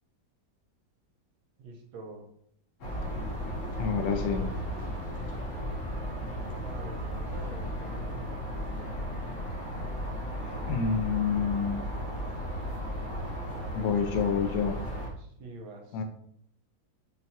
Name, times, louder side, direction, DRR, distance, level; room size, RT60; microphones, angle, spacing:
voice 1, 1.6-2.3 6.3-8.5 15.2-16.0, right 2 dB, 85° right, 1 dB, 1.6 m, -46 dB
sound 1, 2.8-15.1, equal, 55° left, 1.2 m, -35 dB
voice 2, 3.8-4.5 10.6-11.8 13.7-14.8 15.9-16.0, left 6 dB, 70° left, 6 dB, 1.0 m, -28 dB
6.0 x 2.3 x 2.7 m, 0.68 s
omnidirectional pair, 2.1 m